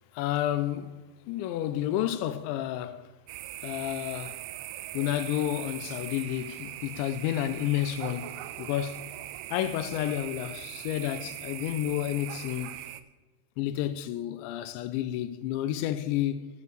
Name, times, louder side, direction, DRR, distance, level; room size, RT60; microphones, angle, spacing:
voice 1, 0.1-0.9 1.3-3.1 3.6-4.4 4.9-9.0 9.5-12.8 13.6-16.5, left 12 dB, 85° left, 2.7 m, -30 dB
sound 1, 3.3-13.0, right 14 dB, 85° right, 2.8 m, -41 dB
11.0 x 7.4 x 7.9 m
omnidirectional pair, 5.7 m